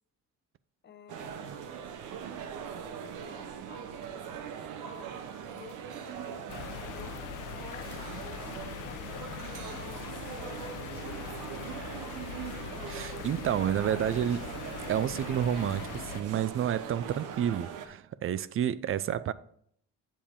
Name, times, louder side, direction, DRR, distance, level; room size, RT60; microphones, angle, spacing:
voice 1, 0.8-1.6 2.5-6.5 6.9-7.3 7.6-11.5, left 6 dB, 35° left, 0.9 m, -53 dB
sound 1, 1.1-17.9, right 8 dB, 90° right, 0.8 m, -41 dB
sound 2, 6.5-16.2, left 13 dB, 85° left, 0.5 m, -42 dB
voice 2, 12.9-14.5 14.9-19.3, right 10 dB, 45° right, 0.4 m, -30 dB
7.5 x 6.9 x 3.6 m
cardioid pair, 90°, 30 cm